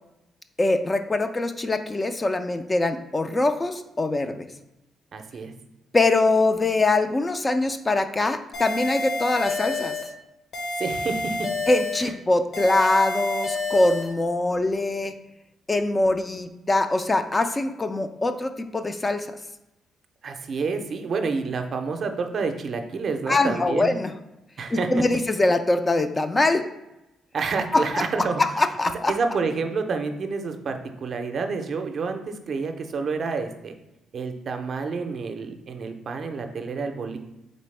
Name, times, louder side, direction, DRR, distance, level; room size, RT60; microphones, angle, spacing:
voice 1, 0.6-4.5 5.9-10.0 11.7-15.1 15.7-19.3 23.3-24.1 24.7-26.7 27.7-28.1 28.4-29.1, left 2 dB, 25° left, 9 dB, 0.3 m, -23 dB
voice 2, 5.1-5.5 10.8-11.5 12.0-12.1 20.2-23.9 24.6-24.9 27.3-28.4 29.1-33.7 34.1-37.2, right 4 dB, 50° right, 6 dB, 0.5 m, -29 dB
sound 1, 8.5-10.1 10.5-12.1 12.5-14.1, left 2 dB, 55° left, 0.9 m, -29 dB
4.1 x 3.4 x 3.2 m, 0.92 s
cardioid pair, 90°, 0 cm